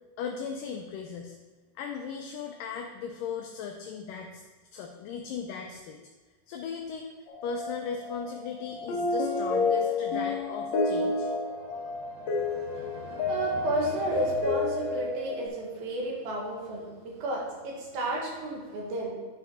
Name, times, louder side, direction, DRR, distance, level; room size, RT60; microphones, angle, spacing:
voice 1, 0.2-1.4 1.8-4.4 4.7-6.0 6.5-7.1 7.4-11.3 11.7-11.9, left 6 dB, 80° left, 3 dB, 2.0 m, -37 dB
sound 1, 7.3-15.5, left 3 dB, 60° left, 2.0 m, -30 dB
sound 2, 11.0-15.4, right 1 dB, 85° right, 3.3 m, -45 dB
voice 2, 13.3-19.1, right 2 dB, 70° right, -2 dB, 3.5 m, -32 dB
10.5 x 5.7 x 4.2 m, 1.4 s
omnidirectional pair, 4.5 m